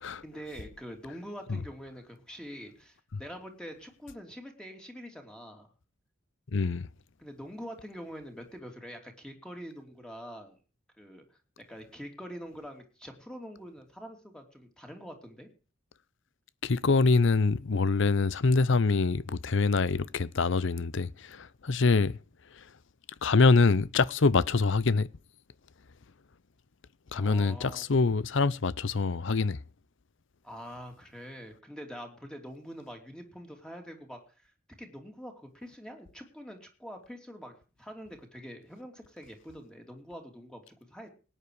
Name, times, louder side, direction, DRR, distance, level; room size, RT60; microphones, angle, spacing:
voice 1, 0.2-5.7 7.2-10.6 11.0-11.4 11.7-15.5 27.1-28.1 30.4-34.5 34.8-40.6 40.9-41.1, equal, 5° left, 3.1 m, -45 dB
voice 2, 6.5-6.9 16.6-22.2 22.6-22.7 23.2-25.1 27.1-29.6, left 4 dB, 65° left, 0.7 m, -25 dB
18.5 x 9.7 x 4.8 m
head